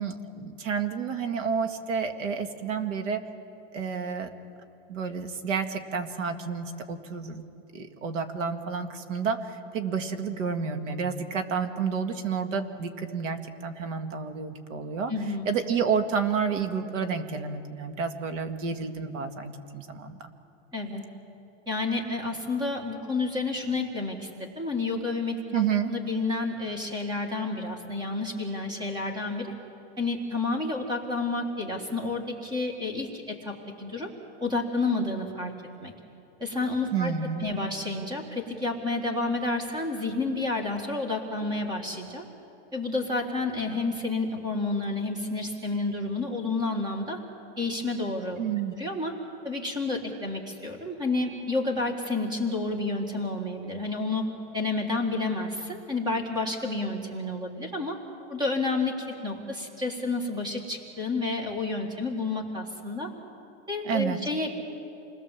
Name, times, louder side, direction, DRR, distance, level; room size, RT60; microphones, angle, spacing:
voice 1, 0.0-3.2 3.7-4.3 4.9-7.4 7.7-15.1 15.5-20.3 25.5-25.9 36.9-37.5 48.4-48.7 63.8-64.2, right 6 dB, 75° right, 7 dB, 2.0 m, -30 dB
voice 2, 15.1-15.5 20.7-21.0 21.7-25.6 25.9-29.5 30.0-34.1 34.4-35.5 35.8-35.9 36.4-37.1 37.4-42.3 42.7-47.2 47.6-48.4 48.8-49.1 49.4-54.2 54.5-58.0 58.3-63.1 63.7-64.6, left 3 dB, 10° right, 3 dB, 2.0 m, -30 dB
28.0 x 20.0 x 7.4 m, 2.8 s
supercardioid pair, 170°, 38 cm